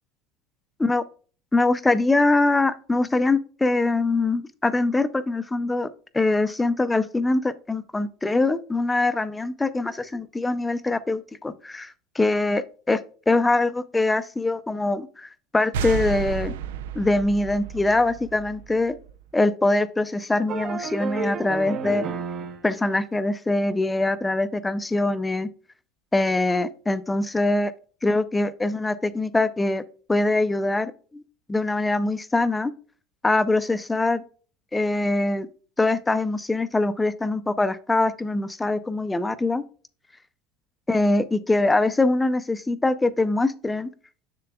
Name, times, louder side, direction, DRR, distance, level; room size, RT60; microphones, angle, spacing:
voice 1, 1.5-5.9 6.1-13.0 13.3-16.5 17.0-18.9 19.3-22.0 22.6-25.5 26.1-27.7 28.0-29.8 30.1-31.2 31.5-32.7 33.2-34.2 34.7-35.5 35.8-39.6 40.9-43.9, left 2 dB, 10° left, 13 dB, 0.5 m, -23 dB
sound 1, 15.7-19.2, right 6 dB, 90° right, 0.4 m, -32 dB
sound 2, 20.5-22.6, right 4 dB, 40° right, 0.8 m, -31 dB
6.7 x 6.7 x 2.3 m, 0.40 s
supercardioid pair, 110°, 0 cm